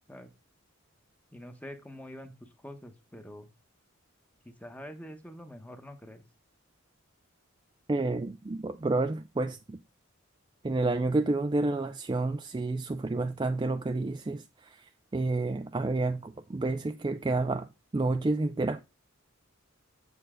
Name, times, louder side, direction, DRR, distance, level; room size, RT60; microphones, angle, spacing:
voice 1, 1.3-3.5 4.4-6.2, equal, 5° left, 1.0 m, -46 dB
voice 2, 7.9-9.8 10.6-14.8 15.1-17.7 17.9-18.8, right 2 dB, 20° right, 0.3 m, -29 dB
7.8 x 6.8 x 3.7 m
head